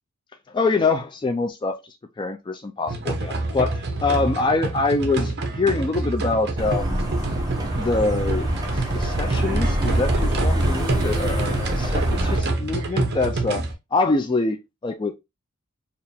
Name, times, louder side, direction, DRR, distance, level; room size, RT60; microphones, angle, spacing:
voice 1, 0.5-1.8 2.2-7.1 7.7-8.5 8.7-13.6 13.9-15.2, left 3 dB, 20° left, 0.3 m, -25 dB
sound 1, 2.9-13.7, right 2 dB, 50° right, 0.9 m, -27 dB
sound 2, 6.6-12.4, right 1 dB, 20° right, 1.0 m, -25 dB
4.6 x 2.5 x 3.4 m
head